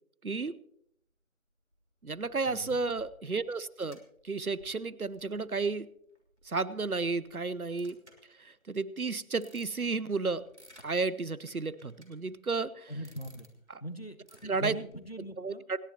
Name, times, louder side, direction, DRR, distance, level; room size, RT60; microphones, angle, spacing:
voice 1, 0.2-0.6 2.0-4.0 4.2-5.9 6.4-8.0 8.4-10.5 10.8-12.9 13.7-13.8 14.4-14.7 15.4-15.8, right 4 dB, 80° right, 18 dB, 0.9 m, -32 dB
sound 1, 1.7-8.6 9.1-10.9 11.5-12.6 12.9-13.8 14.2-15.1, equal, 50° right, 3.1 m, -60 dB
voice 2, 2.5-2.8 12.9-13.5 13.8-15.6, right 1 dB, 45° left, 10 dB, 1.2 m, -41 dB
28.0 x 11.0 x 2.9 m, 0.74 s
figure-of-eight pair, 180°, 43 cm